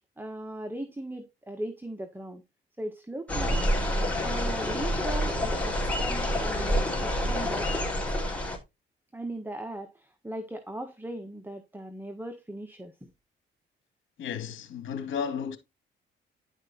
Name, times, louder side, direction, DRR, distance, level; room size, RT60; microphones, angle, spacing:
voice 1, 0.2-2.4 2.8-3.6 4.2-7.7 9.1-13.1, right 1 dB, 10° right, 1.5 m, -38 dB
sound 1, 3.3-8.6, equal, 5° left, 4.5 m, -28 dB
voice 2, 14.2-15.6, left 7 dB, 70° left, 2.8 m, -33 dB
11.5 x 5.1 x 4.3 m
cardioid pair, 90°, 20 cm